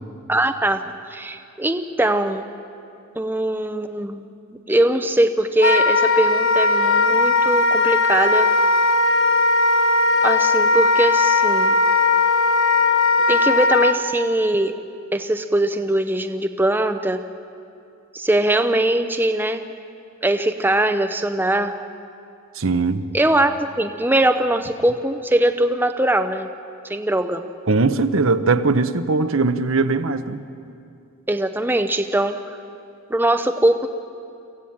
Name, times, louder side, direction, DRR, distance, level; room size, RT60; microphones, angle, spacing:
voice 1, 0.3-2.4 3.2-4.3 4.7-8.5 10.2-11.7 13.3-14.7 15.1-17.2 18.1-19.6 20.2-21.8 23.1-23.5 23.8-26.5 26.9-27.5 31.3-32.4 33.1-33.9, right 1 dB, 10° right, 7 dB, 0.6 m, -21 dB
Wind instrument woodwind instrument, 5.6-14.0, left 3 dB, 60° left, 0.9 m, -18 dB
voice 2, 22.5-23.0 27.7-30.4, right 3 dB, 65° right, 10 dB, 0.8 m, -20 dB
23.5 x 15.5 x 8.7 m, 2.5 s
head